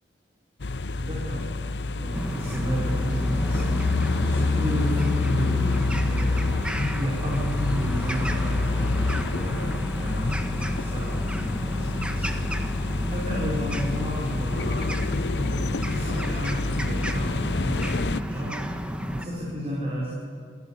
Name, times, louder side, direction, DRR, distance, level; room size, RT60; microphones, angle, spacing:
sound 1, 0.6-18.2, left 3 dB, 70° left, 0.7 m, -27 dB
voice 1, 0.9-1.4 1.9-3.8 4.2-5.8 6.0-6.5 6.9-8.9 9.2-12.5 13.0-15.1 15.3-17.3 17.6-20.1, equal, 35° right, -5 dB, 5.0 m, -32 dB
sound 2, 2.1-19.3, equal, 5° right, 1.4 m, -32 dB
26.5 x 15.0 x 9.9 m, 2.1 s
head